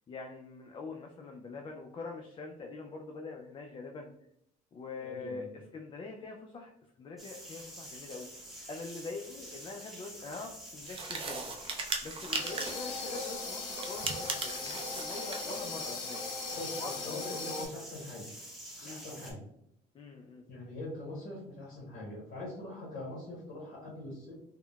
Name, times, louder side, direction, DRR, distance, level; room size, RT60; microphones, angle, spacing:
voice 1, 0.1-4.1 4.7-6.7 7.0-8.3 8.7-11.5 12.0-16.2 16.8-17.1 17.5-17.6 18.8-19.1 19.9-20.4, left 3 dB, 30° left, 2 dB, 0.3 m, -44 dB
voice 2, 5.0-5.5 16.5-18.3 18.8-19.4 20.5-24.3, left 1 dB, 60° left, -7 dB, 1.1 m, -43 dB
sound 1, 7.2-19.3, equal, ahead, 0.9 m, -48 dB
sound 2, 10.8-12.9 13.7-15.5, right 3 dB, 30° right, 0.5 m, -38 dB
sound 3, 12.3-17.7, left 3 dB, 85° left, 0.8 m, -39 dB
3.5 x 2.0 x 2.2 m, 0.77 s
cardioid pair, 110°, 17 cm